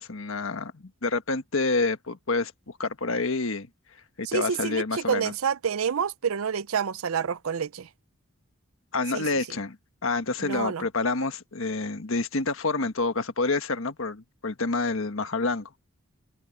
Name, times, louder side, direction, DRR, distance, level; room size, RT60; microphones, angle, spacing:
voice 1, 0.0-2.5 2.8-3.7 4.2-5.3 8.9-9.8 10.0-15.7, left 3 dB, 70° left, 1.4 m, -28 dB
voice 2, 4.2-7.9 9.1-9.3 10.4-10.9, right 7 dB, 80° right, 0.6 m, -28 dB
head